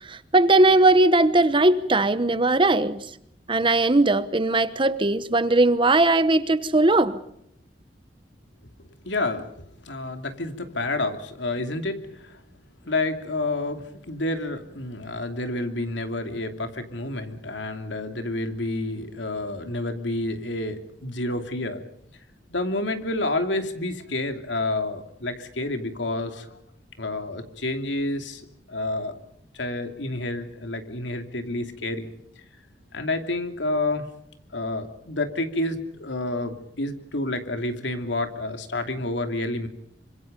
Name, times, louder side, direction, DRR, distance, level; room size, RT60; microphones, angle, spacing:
voice 1, 0.1-3.1 3.5-7.2, right 2 dB, 30° right, 1.1 m, -19 dB
voice 2, 9.0-12.4 12.8-21.8 22.5-26.6 27.0-29.1 29.5-32.1 32.9-34.1 34.5-39.7, left 2 dB, 85° left, 2.8 m, -29 dB
26.5 x 25.5 x 5.3 m
head